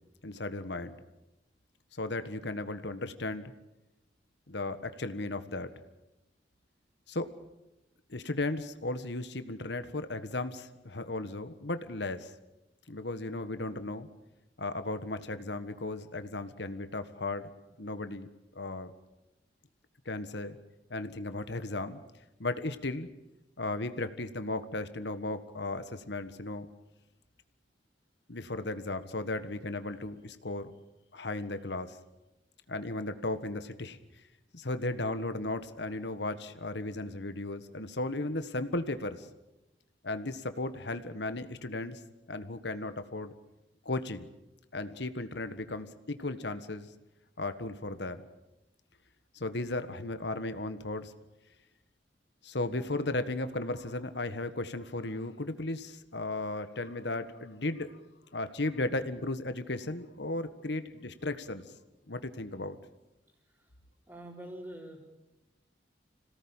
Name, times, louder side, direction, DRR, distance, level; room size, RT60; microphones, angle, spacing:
voice 1, 0.2-1.0 1.9-3.5 4.5-5.8 7.1-7.3 8.1-12.4 12.9-14.1 14.6-17.5 17.8-18.3 18.5-18.9 20.0-20.6 20.9-22.0 22.4-23.1 23.6-26.7 28.3-30.7 31.1-32.0 32.7-34.0 34.5-39.3 40.0-42.0 42.3-43.3 43.8-44.3 44.7-46.9 47.4-48.3 49.3-51.1 52.4-58.0 58.3-61.7 62.1-62.8, left 2 dB, 65° left, 10 dB, 1.5 m, -35 dB
voice 2, 64.1-65.0, right 1 dB, 15° right, -5 dB, 4.2 m, -45 dB
27.0 x 18.0 x 9.0 m, 0.96 s
head